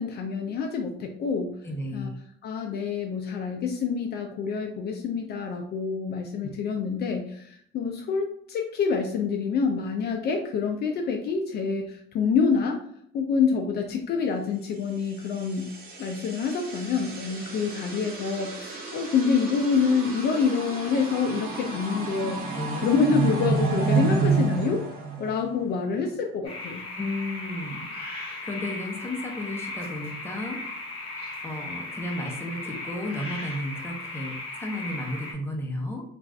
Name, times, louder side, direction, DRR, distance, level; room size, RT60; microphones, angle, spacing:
voice 1, 0.0-1.5 1.9-2.1 2.4-12.8 13.1-15.7 16.0-22.4 22.8-24.9 25.2-26.8, left 5 dB, 50° left, 3 dB, 0.4 m, -27 dB
voice 2, 1.6-2.1 6.4-6.5 22.5-23.0 27.0-27.8 28.4-30.6 31.4-36.0, left 1 dB, 10° left, 1 dB, 0.7 m, -33 dB
sound 1, 15.1-25.8, right 4 dB, 45° right, 0.7 m, -30 dB
sound 2, 26.4-35.3, left 2 dB, 25° left, 1.0 m, -37 dB
2.5 x 2.4 x 3.2 m, 0.66 s
cardioid pair, 110°, 21 cm